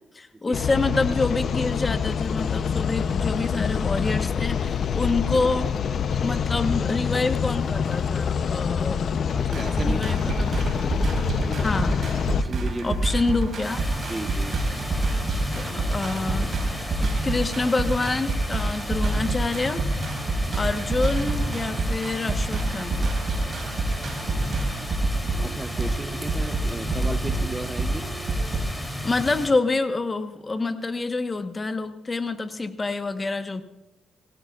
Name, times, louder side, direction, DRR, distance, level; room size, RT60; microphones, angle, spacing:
voice 1, 0.2-5.7 6.2-9.1 9.8-10.5 11.6-12.0 12.8-13.8 15.6-16.5 17.0-19.8 20.5-23.1 29.0-33.6, left 3 dB, 25° left, 8 dB, 1.2 m, -27 dB
sound 1, 0.5-12.4, left 7 dB, 55° left, 0.7 m, -26 dB
voice 2, 9.3-10.2 11.4-11.7 12.3-13.0 14.1-14.5 25.4-28.1, right 2 dB, 20° right, 10 dB, 0.7 m, -34 dB
sound 2, 9.5-28.6, right 2 dB, 45° right, 5.0 m, -27 dB
sound 3, 13.6-29.5, left 1 dB, 5° left, 3.2 m, -34 dB
26.0 x 17.0 x 2.5 m, 1.0 s
cardioid pair, 90°, 0 cm